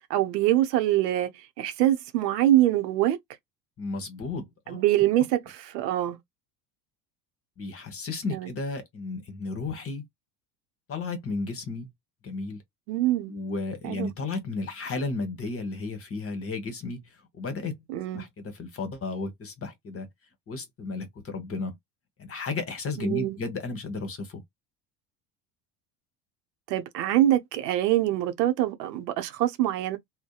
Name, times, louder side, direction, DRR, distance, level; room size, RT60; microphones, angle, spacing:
voice 1, 0.1-3.2 4.7-6.2 8.3-8.5 12.9-13.3 13.8-14.1 17.9-18.3 23.0-23.4 26.7-30.0, right 13 dB, 80° right, 0.7 m, -24 dB
voice 2, 3.8-4.8 7.6-10.0 10.9-11.9 12.2-12.6 13.3-17.8 18.1-20.1 20.5-21.8 22.2-24.4, left 3 dB, 30° left, 1.0 m, -33 dB
2.7 x 2.2 x 2.2 m
hypercardioid pair, 75°, 49 cm